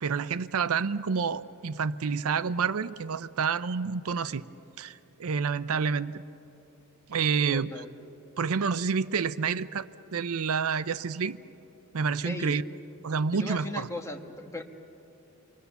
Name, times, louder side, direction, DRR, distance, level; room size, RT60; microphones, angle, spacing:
voice 1, 0.0-4.5 4.8-6.2 7.1-7.9 8.4-11.4 11.9-12.6 13.0-13.9, right 5 dB, 70° right, 15 dB, 0.5 m, -29 dB
voice 2, 7.5-7.9 12.2-12.6 13.3-14.6, left 1 dB, 15° left, 3 dB, 1.4 m, -37 dB
28.5 x 23.5 x 7.0 m, 2.8 s
head